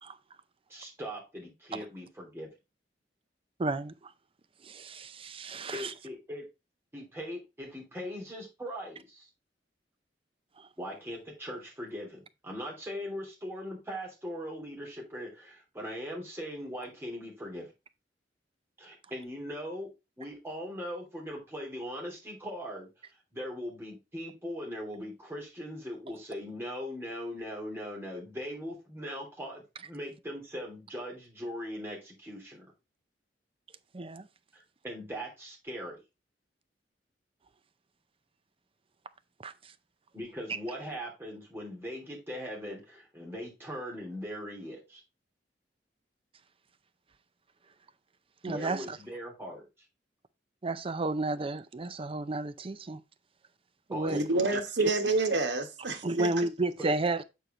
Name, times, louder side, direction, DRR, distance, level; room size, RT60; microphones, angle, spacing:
voice 1, 0.7-2.5 5.7-6.5 6.9-9.3 10.8-17.7 18.8-22.9 23.3-32.7 34.5-36.0 40.1-45.0 48.4-49.6 53.9-54.9 56.8-56.9, equal, 15° right, 3.1 m, -40 dB
voice 2, 3.6-3.9 4.6-5.9 33.9-34.3 39.4-39.5 48.4-49.0 50.6-53.0 53.9-54.2 56.0-57.2, right 2 dB, 30° right, 0.5 m, -32 dB
voice 3, 54.1-56.3, right 3 dB, 85° right, 1.4 m, -28 dB
8.2 x 4.6 x 3.7 m
head